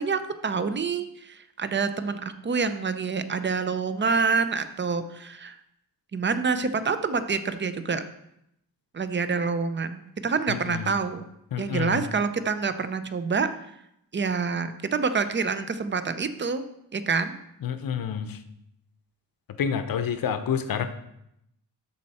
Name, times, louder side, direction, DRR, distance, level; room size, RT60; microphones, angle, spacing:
voice 1, 0.0-5.6 6.1-8.0 8.9-11.2 11.6-13.5 14.1-16.6 16.9-17.3, right 5 dB, 25° right, 11 dB, 0.5 m, -27 dB
voice 2, 10.5-11.0 11.5-12.0 17.6-18.4 19.6-20.9, left 7 dB, 55° left, 10 dB, 0.7 m, -28 dB
12.5 x 4.4 x 4.2 m, 0.80 s
wide cardioid pair, 130°, 43 cm